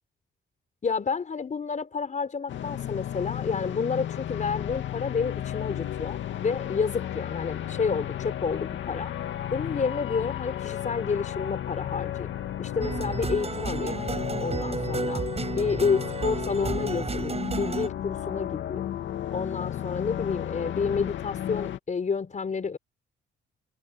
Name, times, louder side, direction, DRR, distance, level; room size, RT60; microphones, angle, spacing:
voice 1, 0.8-9.1 9.5-12.3 12.6-14.0 14.4-15.2 15.6-18.9 19.3-22.8, left 5 dB, 40° left, 5.1 m, -30 dB
sound 1, 2.5-21.8, left 11 dB, 70° left, 2.4 m, -33 dB
sound 2, 12.8-17.9, right 4 dB, 30° right, 7.7 m, -32 dB
cardioid pair, 90°, 20 cm